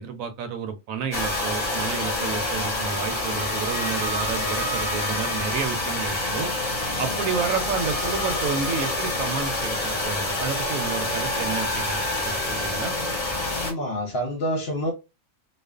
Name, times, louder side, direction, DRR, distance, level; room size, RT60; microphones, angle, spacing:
voice 1, 0.0-6.5 7.0-12.9, right 6 dB, 75° right, 0.9 m, -30 dB
sound 1, 1.1-13.7, left 1 dB, 30° left, 0.9 m, -27 dB
voice 2, 13.6-14.9, equal, 55° left, 0.8 m, -28 dB
2.4 x 2.4 x 2.3 m
omnidirectional pair, 1.5 m